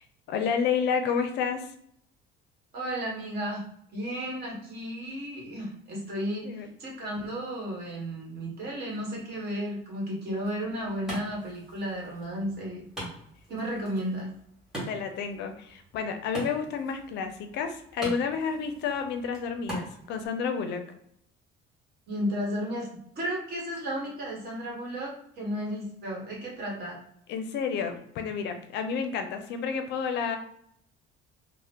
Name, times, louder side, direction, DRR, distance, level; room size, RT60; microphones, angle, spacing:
voice 1, 0.0-1.7 6.4-6.7 14.9-20.8 27.3-30.4, left 6 dB, 55° left, 6 dB, 0.4 m, -30 dB
voice 2, 2.7-3.6 3.9-12.8 13.5-14.3 22.1-22.9 23.2-27.0, equal, 50° right, -2 dB, 1.2 m, -33 dB
Wood, 10.3-20.3, right 1 dB, ahead, 1.1 m, -43 dB
2.8 x 2.0 x 3.4 m, 0.69 s
cardioid pair, 170°, 21 cm